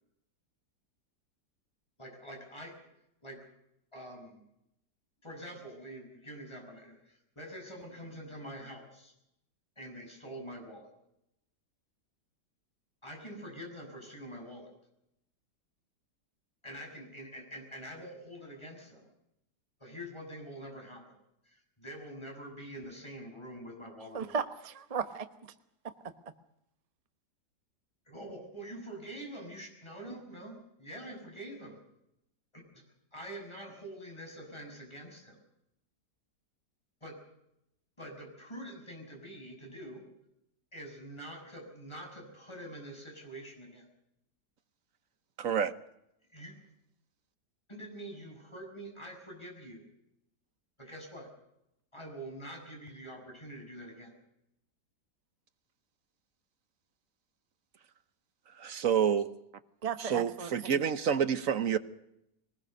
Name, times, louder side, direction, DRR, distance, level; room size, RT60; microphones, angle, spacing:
voice 1, 2.0-2.7 3.2-3.5 3.9-4.4 5.2-9.1 9.8-10.9 13.0-14.7 16.6-19.1 19.8-21.2 21.4-24.4 28.1-31.8 32.7-32.8 33.1-35.4 37.0-37.2 38.0-40.0 40.7-43.8 46.3-46.6 47.7-49.8 50.8-51.3 51.9-54.2, right 1 dB, 15° left, 6.8 m, -45 dB
voice 2, 24.1-25.5 25.8-26.1 59.8-60.5, right 6 dB, 25° right, 0.9 m, -36 dB
voice 3, 45.4-45.7 58.6-59.3 60.0-61.8, right 8 dB, 55° right, 1.3 m, -28 dB
22.5 x 20.0 x 6.5 m
omnidirectional pair, 1.9 m